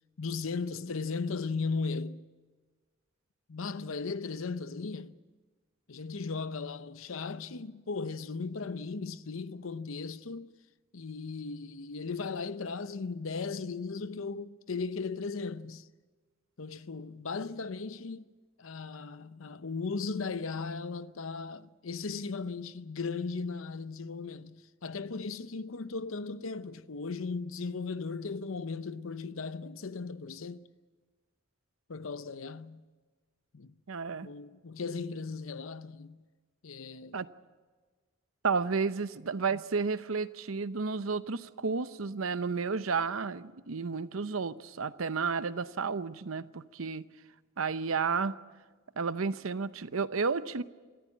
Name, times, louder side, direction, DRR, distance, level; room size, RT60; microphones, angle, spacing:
voice 1, 0.2-2.3 3.5-5.2 5.9-10.5 10.9-15.9 16.6-18.3 18.6-30.6 31.9-32.8 33.5-33.7 34.2-36.2 36.6-37.2, left 4 dB, 80° left, 0.7 m, -37 dB
voice 2, 33.9-34.3 37.1-37.3 38.4-47.1 47.6-48.4 49.0-50.6, right 5 dB, 90° right, 0.8 m, -32 dB
27.0 x 14.0 x 8.6 m
head